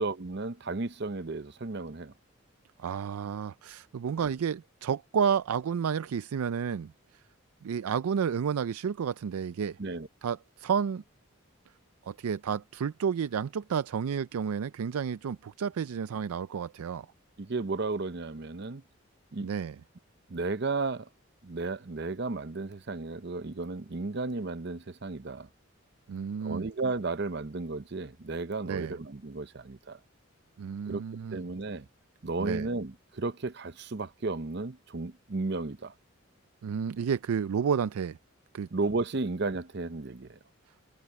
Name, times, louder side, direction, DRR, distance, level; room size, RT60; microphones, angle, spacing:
voice 1, 0.0-2.1 9.8-10.1 17.4-18.8 19.3-19.5 20.3-21.1 21.4-25.5 26.4-30.0 30.9-31.0 31.3-31.9 32.2-35.9 38.7-40.4, right 3 dB, 50° right, 0.7 m, -33 dB
voice 2, 2.8-7.2 7.6-9.8 10.2-11.0 12.0-17.1 19.4-19.8 26.1-26.7 28.7-28.9 30.6-31.4 32.4-32.7 36.6-38.2 38.5-38.7, right 7 dB, 90° right, 0.4 m, -31 dB
head